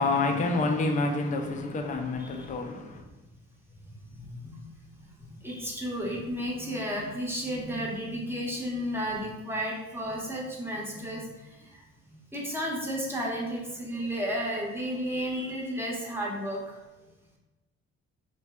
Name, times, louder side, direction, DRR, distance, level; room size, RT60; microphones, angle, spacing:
voice 1, 0.0-3.0, left 3 dB, 25° left, 0.4 m, -28 dB
voice 2, 4.1-4.7 5.2-11.8 12.3-16.7, equal, 10° right, 0.7 m, -33 dB
3.2 x 2.7 x 2.2 m
cardioid pair, 90°, 30 cm